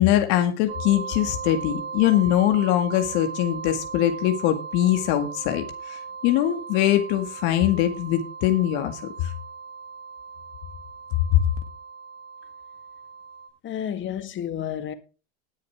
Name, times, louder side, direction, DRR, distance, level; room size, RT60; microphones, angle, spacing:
voice 1, 0.0-9.3 11.3-11.4, left 12 dB, 60° left, 2.0 m, -22 dB
sound 1, 0.7-13.5, right 5 dB, 75° right, 4.0 m, -37 dB
voice 2, 13.6-14.9, left 9 dB, 35° left, 1.9 m, -31 dB
19.5 x 6.7 x 3.6 m
supercardioid pair, 110°, 33 cm